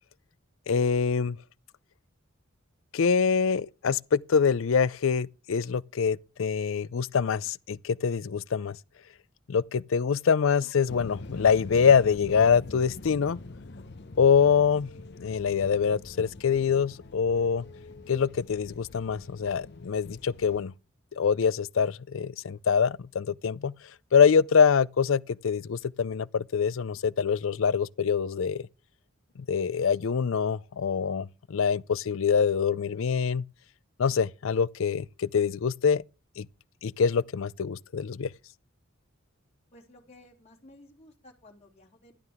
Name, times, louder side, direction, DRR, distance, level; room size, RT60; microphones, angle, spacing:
voice 1, 0.7-1.4 2.9-8.8 9.5-13.4 14.2-14.9 15.2-17.6 18.1-20.7 21.2-23.7 24.1-28.7 29.4-33.4 34.0-36.0 36.4-36.5 36.8-38.3, left 6 dB, 70° left, 0.4 m, -25 dB
sound 1, 10.9-20.6, left 2 dB, 55° left, 0.8 m, -44 dB
voice 2, 39.7-42.1, left 1 dB, 30° left, 3.0 m, -54 dB
12.0 x 11.0 x 3.5 m
head